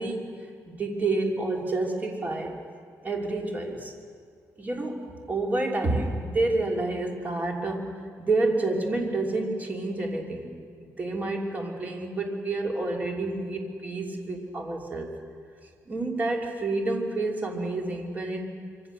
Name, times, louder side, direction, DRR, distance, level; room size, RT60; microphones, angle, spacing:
voice 1, 0.0-2.6 3.0-3.9 4.6-15.1 15.9-18.6, right 2 dB, 25° right, 0 dB, 3.1 m, -29 dB
25.5 x 24.5 x 6.7 m, 2.2 s
cardioid pair, 145°, 6 cm